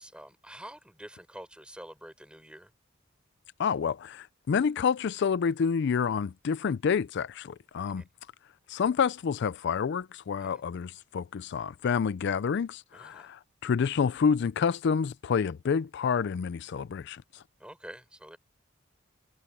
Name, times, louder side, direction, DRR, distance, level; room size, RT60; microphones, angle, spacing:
voice 1, 0.0-2.7 7.9-8.1 10.4-10.6 12.9-13.3 17.6-18.4, right 1 dB, 5° right, 6.6 m, -47 dB
voice 2, 3.6-8.0 8.7-17.4, left 6 dB, 60° left, 0.4 m, -28 dB
head